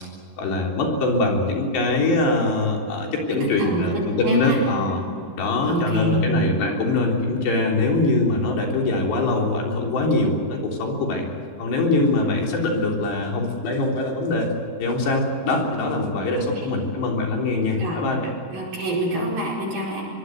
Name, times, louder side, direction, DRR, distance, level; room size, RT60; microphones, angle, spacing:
voice 1, 0.4-5.0 5.4-11.3 11.6-14.5 14.8-18.3, left 2 dB, 65° left, 0 dB, 5.9 m, -23 dB
voice 2, 3.4-4.6 5.6-6.2 17.8-18.0 18.5-20.0, right 1 dB, 55° right, -5 dB, 6.6 m, -26 dB
25.0 x 23.0 x 8.1 m, 2.3 s
omnidirectional pair, 5.3 m